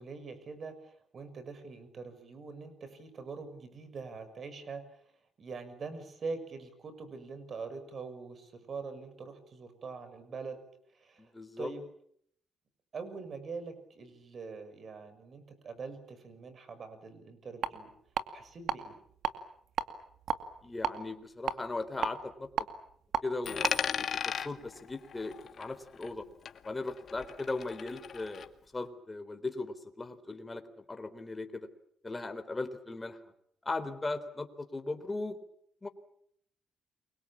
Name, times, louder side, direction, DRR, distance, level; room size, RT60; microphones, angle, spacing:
voice 1, 0.0-5.0 5.4-10.6 10.9-11.3 11.6-11.8 12.9-17.9 18.3-19.0, right 4 dB, 50° right, 12 dB, 6.4 m, -43 dB
voice 2, 11.2-11.7 20.6-22.5 23.2-26.3 26.6-31.7 32.0-33.2 33.6-35.4 35.8-35.9, left 3 dB, 20° left, 8 dB, 3.9 m, -38 dB
sound 1, 17.6-17.7 18.2-18.8 19.1-19.3 19.8-20.9 21.5-23.2 23.6-23.7, right 7 dB, 65° right, 2.3 m, -32 dB
Coin (dropping), 23.4-26.2 26.5-28.5, left 7 dB, 55° left, 2.0 m, -37 dB
29.5 x 23.5 x 7.5 m, 0.68 s
cardioid pair, 90°, 0 cm